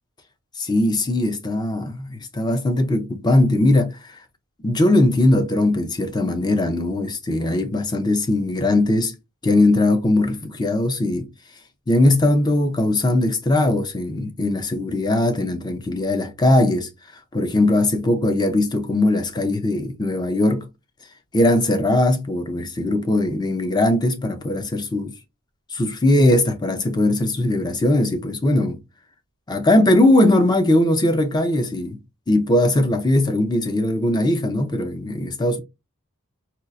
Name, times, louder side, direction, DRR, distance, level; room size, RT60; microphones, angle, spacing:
voice 1, 0.6-4.2 4.6-9.1 9.4-11.3 11.9-16.9 17.3-20.7 21.3-25.1 25.7-28.8 29.5-32.0 32.3-35.6, left 1 dB, 20° left, 0.5 m, -20 dB
4.3 x 2.4 x 2.5 m
head